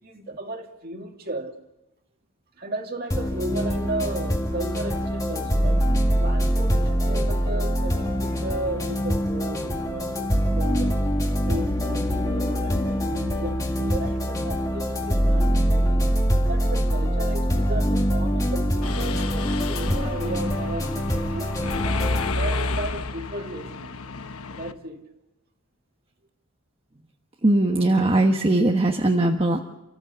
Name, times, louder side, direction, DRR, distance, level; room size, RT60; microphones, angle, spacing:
voice 1, 0.0-1.5 2.6-5.9 6.2-11.0 11.4-16.1 16.5-21.8 22.3-23.9 24.6-25.0, right 2 dB, 40° right, 2.4 m, -35 dB
sound 1, 3.1-22.3, equal, 15° left, 2.0 m, -24 dB
Mechanisms, 18.8-24.7, left 3 dB, 80° left, 1.1 m, -30 dB
voice 2, 27.4-29.6, right 2 dB, 25° right, 1.2 m, -20 dB
30.0 x 15.0 x 8.4 m
head